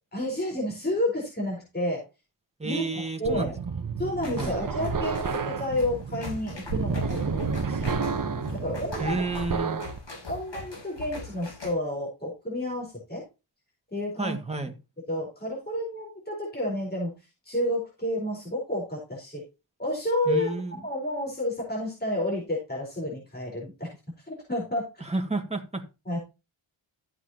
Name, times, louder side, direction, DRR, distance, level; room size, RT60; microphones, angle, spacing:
voice 1, 0.1-2.0 2.6-3.6 4.0-8.0 8.5-9.2 10.3-13.2 13.9-14.4 15.1-17.1 17.4-19.4 19.8-20.5 20.8-23.9 24.3-24.8 26.1-26.2, left 1 dB, 20° left, 4.5 m, -30 dB
voice 2, 2.6-3.5 4.3-4.6 9.0-9.8 14.2-14.8 20.3-20.8 25.0-25.8, right 3 dB, 15° right, 1.9 m, -31 dB
sound 1, 3.2-10.0, right 5 dB, 40° right, 1.0 m, -31 dB
sound 2, 4.2-11.7, left 3 dB, 60° left, 6.5 m, -41 dB
14.0 x 8.1 x 2.9 m
wide cardioid pair, 140°, 49 cm